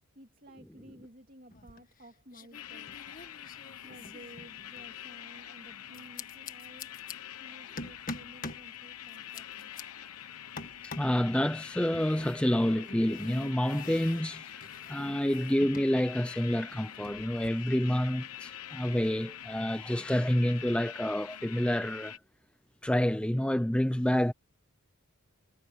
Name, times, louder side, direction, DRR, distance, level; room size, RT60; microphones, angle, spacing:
voice 1, 0.1-3.0 3.8-7.0 7.4-9.7, right 1 dB, 40° right, 3.0 m, -54 dB
sound 1, 1.5-2.0 2.3-4.9 5.9-7.1 7.8-8.7 9.1-9.8 10.6-11.2 11.9-15.9 16.2-17.5, left 3 dB, 40° left, 1.6 m, -45 dB
sound 2, 2.5-22.2, left 11 dB, 85° left, 1.2 m, -45 dB
voice 2, 10.8-22.2 22.8-24.3, equal, 5° left, 0.6 m, -28 dB
head